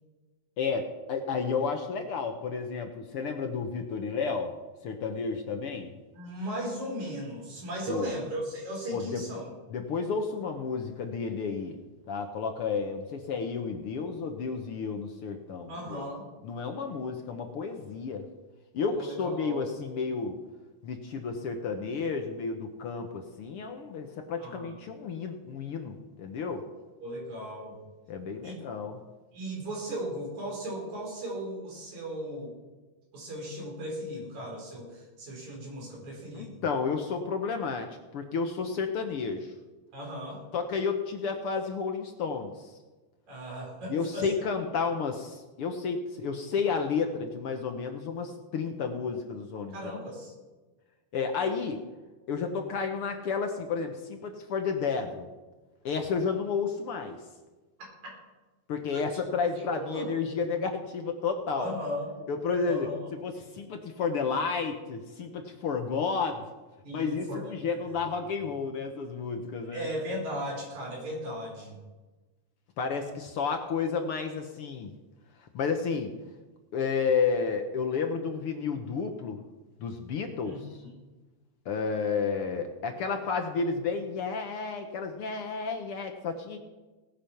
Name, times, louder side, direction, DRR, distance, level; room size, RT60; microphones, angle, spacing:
voice 1, 0.6-4.5 4.8-5.9 7.9-8.2 8.9-9.2 9.7-11.8 12.1-16.0 16.4-18.3 18.7-20.4 20.8-26.6 28.1-29.0 36.3-37.9 38.1-39.5 40.5-42.7 43.9-49.9 51.1-51.8 52.3-55.3 55.8-57.2 58.7-61.7 62.3-62.9 63.2-66.4 66.9-69.9 72.8-74.9 75.4-76.1 76.7-79.4 79.8-80.6 81.6-86.6, left 5 dB, 60° left, 5 dB, 1.5 m, -31 dB
voice 2, 6.1-9.5 15.7-16.2 18.9-19.7 24.4-24.8 27.0-27.8 28.4-28.6 29.3-32.6 33.1-36.6 39.9-40.4 43.3-44.3 49.7-50.3 57.8-58.1 58.9-59.1 59.6-60.1 61.6-62.1 62.7-63.0 66.8-67.5 69.7-71.8 80.5-80.9, equal, 65° right, -1 dB, 5.6 m, -37 dB
18.5 x 8.5 x 5.8 m, 1.2 s
omnidirectional pair, 3.6 m